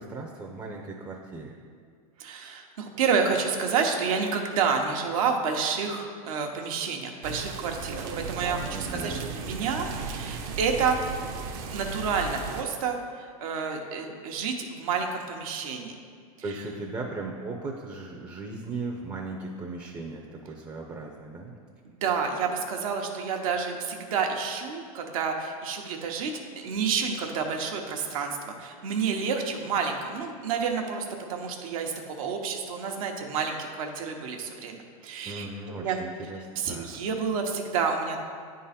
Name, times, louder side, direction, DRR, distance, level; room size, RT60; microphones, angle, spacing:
voice 1, 0.0-1.5 8.7-9.3 16.4-21.5 35.2-36.4 36.6-36.9, right 3 dB, 20° right, 0 dB, 0.6 m, -37 dB
voice 2, 2.2-11.0 11.7-16.0 16.5-16.6 21.8-26.3 26.6-35.5 35.8-36.0 36.6-38.2, right 5 dB, 70° right, 3 dB, 1.0 m, -29 dB
sound 1, 7.2-12.6, right 4 dB, 50° right, 0.8 m, -36 dB
9.4 x 3.8 x 4.2 m, 2.1 s
hypercardioid pair, 110°, 19 cm